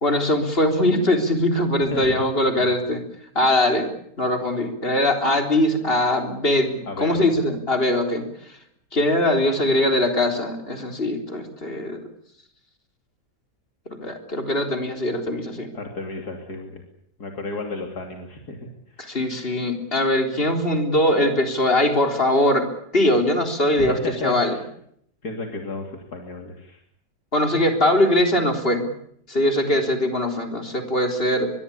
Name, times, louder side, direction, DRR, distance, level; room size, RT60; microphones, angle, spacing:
voice 1, 0.0-3.0 3.4-3.9 4.2-8.6 8.9-12.0 13.9-15.7 19.0-22.7 22.9-24.6 27.3-28.9 29.3-31.5, left 1 dB, 35° left, 5 dB, 4.0 m, -21 dB
voice 2, 1.9-2.2 2.6-2.7 6.8-7.3 15.7-16.8 17.2-19.2 23.8-24.6 25.2-26.8, left 3 dB, 75° left, 3 dB, 3.5 m, -33 dB
23.5 x 22.5 x 8.6 m, 0.70 s
omnidirectional pair, 1.7 m